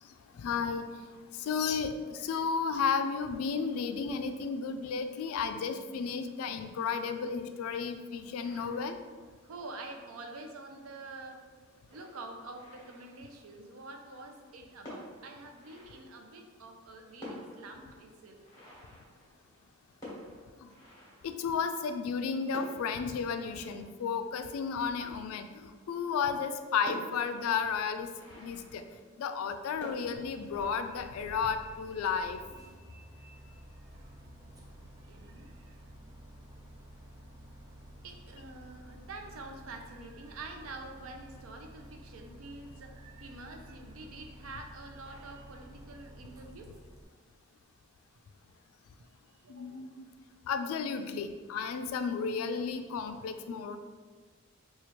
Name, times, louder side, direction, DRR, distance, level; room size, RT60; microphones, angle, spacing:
voice 1, 0.4-0.9 1.4-8.9 20.6-20.7 21.2-28.1 28.4-28.8 29.2-32.4 49.5-50.0 50.5-53.8, left 6 dB, 90° left, 9 dB, 0.3 m, -33 dB
voice 2, 8.4-8.9 9.4-11.4 11.9-18.4 33.2-34.1 35.0-35.8 38.0-46.7 49.4-49.9, right 2 dB, 80° right, 4 dB, 0.5 m, -47 dB
sound 1, 11.9-13.7 14.5-14.6 14.8-16.6 16.9-17.0 17.2-21.9 22.5-25.1 25.6-25.7 26.1-26.2 26.8-29.5 29.8-30.7, left 1 dB, 15° left, 1.1 m, -49 dB
Bus, 30.1-47.0, right 1 dB, 15° right, 0.3 m, -52 dB
4.2 x 2.3 x 3.0 m, 1.4 s
head